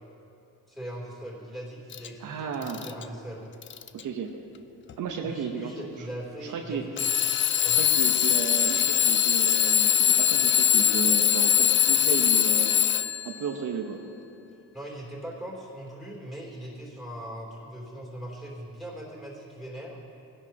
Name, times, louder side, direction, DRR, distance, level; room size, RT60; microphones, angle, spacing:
voice 1, 0.7-3.5 5.2-7.1 7.6-7.8 14.7-20.1, right 1 dB, ahead, -4 dB, 3.2 m, -40 dB
Alarm / Clock, 1.9-2.1 2.6-3.0 3.6-4.0 4.9-5.0 7.0-13.4, left 10 dB, 35° left, 0.4 m, -22 dB
voice 2, 2.2-2.8 3.9-4.3 5.0-5.7 6.0-6.1 6.4-6.8 7.8-12.8 13.2-14.0, right 6 dB, 60° right, 2 dB, 1.0 m, -33 dB
18.0 x 11.0 x 2.9 m, 2.7 s
cardioid pair, 105°, 35 cm